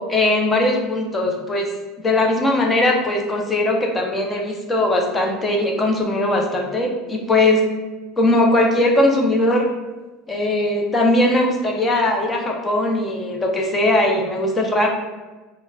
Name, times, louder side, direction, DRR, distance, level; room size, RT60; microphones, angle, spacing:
voice 1, 0.0-1.7 2.0-7.6 8.2-9.6 10.3-14.9, left 1 dB, 15° left, 1 dB, 0.5 m, -19 dB
3.8 x 2.0 x 2.2 m, 1.2 s
supercardioid pair, 140°, 0 cm